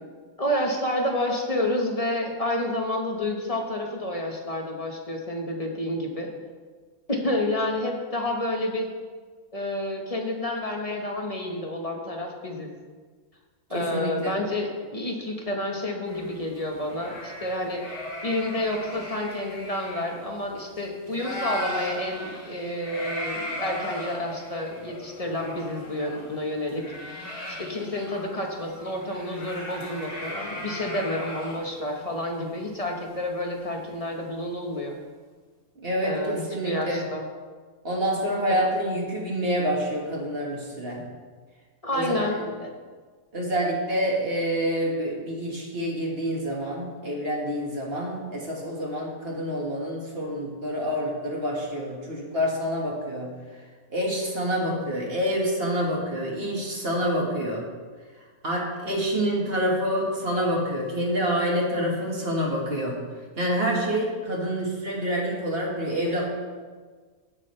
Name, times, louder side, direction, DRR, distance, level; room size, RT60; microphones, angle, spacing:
voice 1, 0.4-6.3 7.1-8.9 9.5-12.7 13.7-17.8 18.2-27.1 27.5-34.9 36.0-37.2 38.5-38.6 41.8-42.7, left 1 dB, 25° left, 1 dB, 1.0 m, -29 dB
voice 2, 13.7-14.4 35.8-37.1 37.8-41.1 41.9-42.3 43.3-53.3 53.9-57.7 58.4-63.0 63.4-66.3, equal, 40° right, -2 dB, 1.9 m, -27 dB
sound 1, 16.1-20.8 21.0-34.0, left 1 dB, 90° left, 3.0 m, -37 dB
15.5 x 6.2 x 3.3 m, 1.5 s
omnidirectional pair, 1.6 m